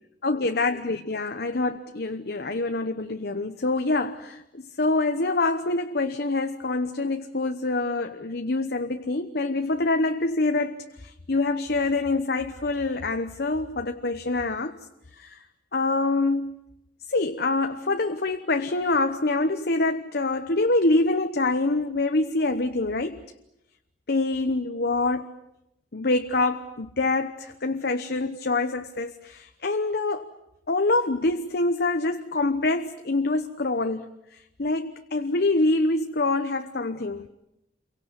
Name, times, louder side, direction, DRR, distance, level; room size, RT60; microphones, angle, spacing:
voice 1, 0.2-4.4 4.8-10.8 11.0-14.7 15.2-15.4 15.7-16.6 17.1-23.2 24.1-25.3 25.9-30.3 30.7-34.1 34.6-37.3, left 2 dB, 55° left, 1.0 m, -25 dB
28.5 x 23.5 x 8.4 m
head